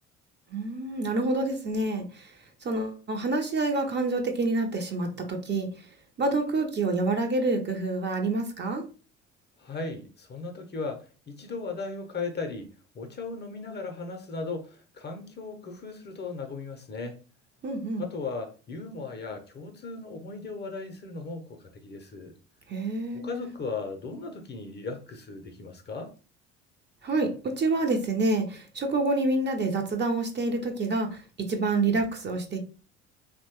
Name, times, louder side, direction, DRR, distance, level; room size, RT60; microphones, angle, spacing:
voice 1, 0.5-2.3 2.6-5.7 6.2-8.9 17.6-18.1 22.7-23.5 27.0-32.6, right 2 dB, 30° right, 0.6 m, -27 dB
voice 2, 9.6-17.2 18.0-22.3 23.1-26.1, left 4 dB, 30° left, 0.6 m, -37 dB
2.9 x 2.1 x 2.9 m
hypercardioid pair, 60°, 35 cm